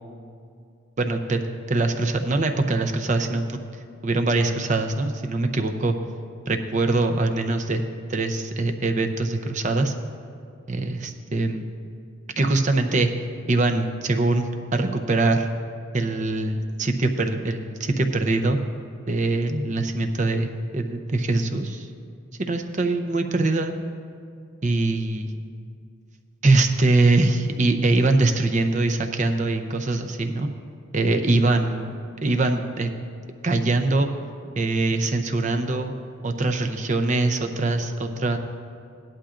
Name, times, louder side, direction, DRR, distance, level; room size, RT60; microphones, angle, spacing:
voice 1, 1.0-3.6 4.0-6.0 6.5-7.8 8.1-9.9 10.7-11.6 12.4-13.1 13.5-15.5 15.9-18.6 19.1-21.9 22.4-23.7 24.6-25.3 26.4-30.5 30.9-31.9 32.2-32.9 33.4-34.1 34.6-35.9 36.2-38.4, right 2 dB, 35° right, 6 dB, 0.6 m, -23 dB
16.5 x 11.5 x 2.5 m, 2.3 s
head